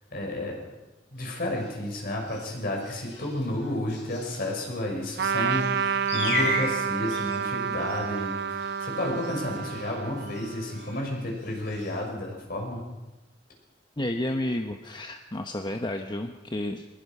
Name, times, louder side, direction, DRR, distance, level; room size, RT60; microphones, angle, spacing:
voice 1, 0.1-0.6 1.1-12.8, left 1 dB, 55° left, 0 dB, 6.3 m, -31 dB
sound 1, 1.1-12.0, left 2 dB, 80° left, 7.6 m, -38 dB
Trumpet, 5.2-11.0, right 7 dB, 65° right, 0.7 m, -30 dB
voice 2, 14.0-16.9, left 1 dB, 25° left, 5 dB, 1.0 m, -31 dB
22.5 x 21.0 x 5.6 m, 1.0 s
head